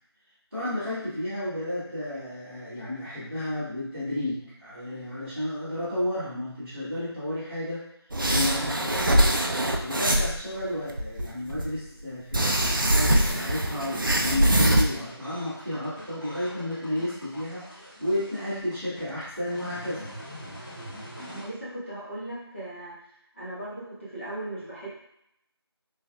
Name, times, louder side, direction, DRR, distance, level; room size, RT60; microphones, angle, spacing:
voice 1, 0.5-7.8 8.3-9.2 9.8-20.0, left 1 dB, 15° right, -22 dB, 0.9 m, -32 dB
sound 1, 8.1-10.4 10.9-11.7 12.3-14.8, right 1 dB, 55° right, 0.4 m, -23 dB
sound 2, 13.5-21.5, equal, 50° left, 1.1 m, -44 dB
voice 2, 21.3-23.0 23.3-24.9, right 1 dB, 30° left, -10 dB, 1.0 m, -37 dB
3.2 x 3.0 x 2.2 m, 0.77 s
figure-of-eight pair, 180°, 14 cm